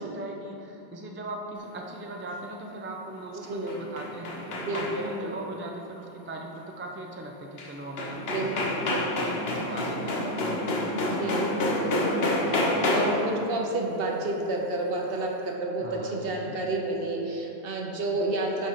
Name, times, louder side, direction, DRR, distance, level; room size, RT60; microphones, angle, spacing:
voice 1, 0.0-11.2 15.8-16.6, right 2 dB, 20° right, 0 dB, 0.3 m, -39 dB
sound 1, 3.4-5.2 7.6-7.7 8.0-13.3, left 1 dB, 70° left, 1.0 m, -28 dB
voice 2, 3.5-3.8 4.5-4.8 5.2-5.4 8.2-9.3 9.9-10.0 11.2-18.7, right 2 dB, 65° right, 0 dB, 1.0 m, -31 dB
10.5 x 4.8 x 2.9 m, 3.0 s
omnidirectional pair, 1.1 m